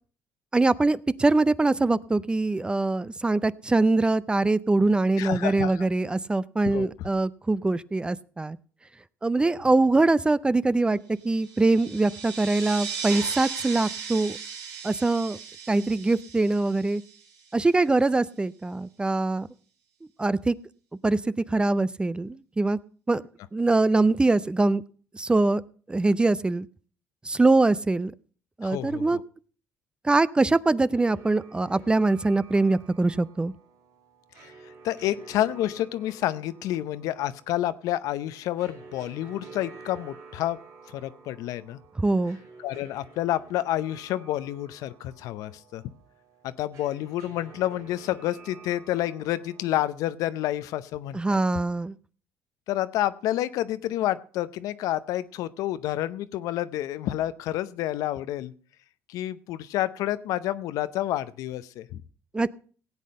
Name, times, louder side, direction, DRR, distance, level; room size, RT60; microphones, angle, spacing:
voice 1, 0.5-8.6 9.2-11.0 11.2-14.4 14.8-15.4 15.7-17.0 17.5-19.5 20.2-20.5 21.0-21.2 21.5-22.8 23.1-23.2 23.5-24.8 25.1-25.6 25.9-26.7 27.2-28.1 28.6-29.2 30.0-33.5 42.0-42.4 51.1-52.0 62.3-62.5, right 2 dB, 15° right, 18 dB, 0.5 m, -23 dB
voice 2, 5.2-5.9 6.6-6.9 28.6-29.2 34.4-34.5 34.8-40.6 40.9-41.8 42.6-45.8 46.4-51.4 52.7-58.5 59.1-62.0, left 13 dB, 80° left, 14 dB, 0.7 m, -29 dB
sound 1, 11.3-17.5, right 6 dB, 80° right, 2.9 m, -37 dB
sound 2, 30.9-49.8, right 4 dB, 65° right, 2.4 m, -50 dB
16.5 x 8.5 x 5.4 m, 0.42 s
cardioid pair, 95°, 6 cm